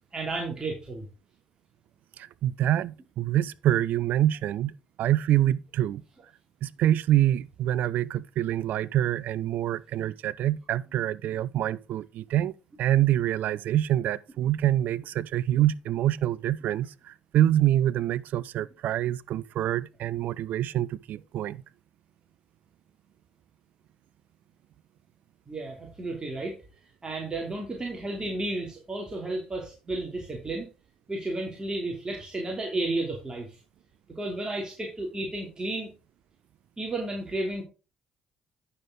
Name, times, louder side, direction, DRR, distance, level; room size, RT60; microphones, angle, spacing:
voice 1, 0.1-1.0 25.5-26.6 27.0-30.7 31.1-33.6 34.1-35.9 36.8-37.6, right 2 dB, 25° right, 3.0 m, -32 dB
voice 2, 2.2-4.7 5.0-6.0 6.6-12.5 12.8-21.6, right 12 dB, 65° right, 0.4 m, -26 dB
9.7 x 6.9 x 3.9 m
hypercardioid pair, 50°, 3 cm